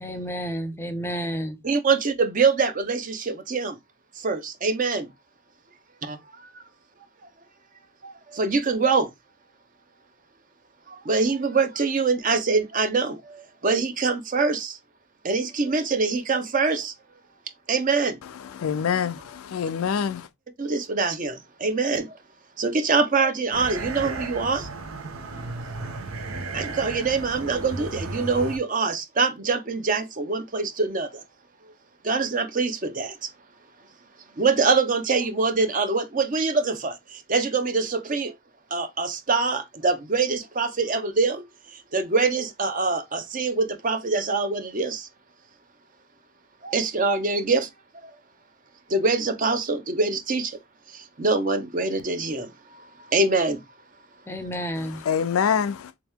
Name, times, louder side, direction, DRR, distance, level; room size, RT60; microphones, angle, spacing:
voice 1, 0.0-1.6 54.3-55.0, equal, 10° left, 0.5 m, -31 dB
voice 2, 1.6-3.7 4.2-5.1 6.1-6.2 8.0-9.1 11.1-13.2 13.6-14.8 15.2-16.9 17.7-18.2 20.6-22.1 22.6-24.7 26.5-31.1 32.0-33.1 34.4-36.9 37.3-38.3 38.7-41.4 41.9-45.1 46.6-47.7 48.9-50.5 51.2-52.5 53.1-53.6, right 4 dB, 40° right, 0.6 m, -24 dB
voice 3, 18.4-20.3 54.8-55.9, left 7 dB, 80° left, 0.4 m, -25 dB
sound 1, 23.5-28.6, right 3 dB, 85° right, 0.8 m, -34 dB
3.5 x 2.9 x 3.4 m
head